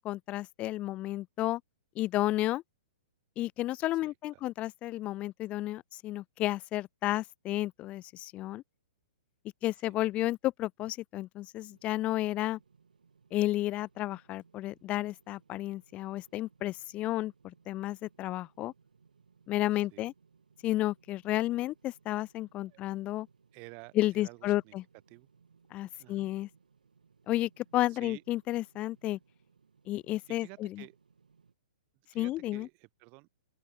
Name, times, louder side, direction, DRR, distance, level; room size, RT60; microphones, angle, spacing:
voice 1, 0.0-1.6 1.9-2.6 3.4-8.6 9.6-12.6 13.3-18.7 19.5-20.1 20.6-23.3 23.9-24.8 25.7-26.5 27.3-29.2 29.9-30.8 32.1-32.7, left 15 dB, 30° left, 1.0 m, -32 dB
voice 2, 4.0-4.4 9.8-10.0 19.7-20.1 22.6-22.8 23.5-24.8 25.1-25.3 26.0-26.3 27.9-28.2 30.3-31.0 32.1-33.3, right 33 dB, 40° right, 6.9 m, -52 dB
sound 1, 11.6-31.5, right 5 dB, 85° right, 5.1 m, -66 dB
open air
hypercardioid pair, 125°, 4 cm